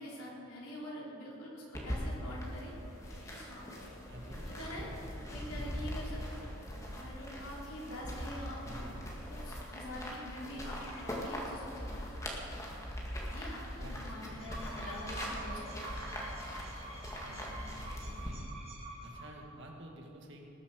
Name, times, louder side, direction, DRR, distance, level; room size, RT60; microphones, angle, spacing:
voice 1, 0.0-2.7 3.3-3.7 4.5-6.4 6.9-8.9 9.2-12.5 13.2-15.8, left 1 dB, 90° left, -4 dB, 4.0 m, -45 dB
sound 1, 1.7-18.3, equal, 15° left, 1.8 m, -41 dB
sound 2, 2.8-17.0, left 2 dB, 70° left, 2.5 m, -58 dB
voice 2, 4.1-4.5 8.6-9.0 13.7-14.4 17.3-18.4 19.0-20.5, right 1 dB, 55° right, 1 dB, 2.1 m, -51 dB
sound 3, 14.3-19.6, right 2 dB, 30° right, 2.4 m, -48 dB
20.0 x 7.4 x 6.6 m, 2.8 s
head